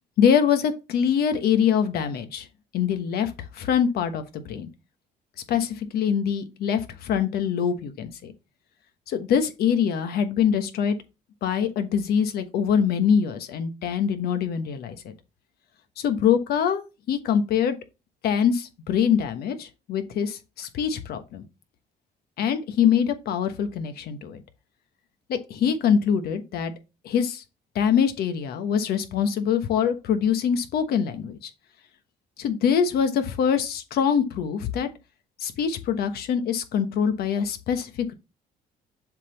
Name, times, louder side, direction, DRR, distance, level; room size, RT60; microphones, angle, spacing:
voice 1, 0.2-2.5 2.7-4.7 5.5-8.3 9.1-11.0 11.4-15.1 16.0-17.7 18.2-21.4 22.4-24.4 25.3-26.7 27.0-27.4 27.7-31.5 32.4-34.9 35.4-38.1, left 7 dB, 70° left, 1.2 m, -24 dB
7.3 x 3.9 x 3.9 m
cardioid pair, 110°, 17 cm